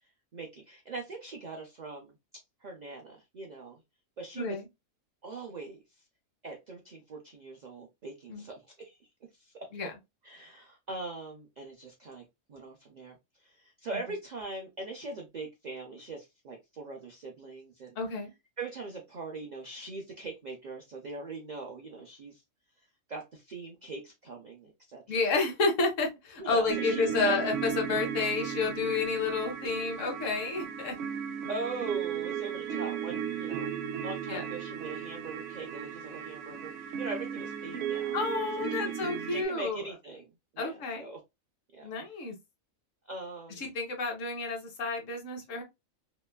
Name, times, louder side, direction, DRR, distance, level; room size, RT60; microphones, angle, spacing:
voice 1, 0.3-2.1 2.6-3.8 4.2-4.6 5.2-6.0 6.4-9.0 9.3-9.7 10.2-17.9 18.6-22.4 23.1-25.2 26.4-27.5 31.5-33.7 34.0-38.5 38.8-38.9 39.3-41.2 41.7-41.9 43.1-43.6, right 3 dB, 90° right, 0.3 m, -41 dB
voice 2, 4.3-4.7 8.3-8.4 9.7-9.9 18.0-18.3 25.1-31.0 34.3-34.4 38.1-39.8 40.6-41.1 41.8-42.3 43.6-45.6, left 4 dB, 70° left, 1.2 m, -30 dB
sound 1, 26.7-39.4, right 8 dB, 65° right, 0.7 m, -35 dB
2.9 x 2.2 x 2.2 m
omnidirectional pair, 1.4 m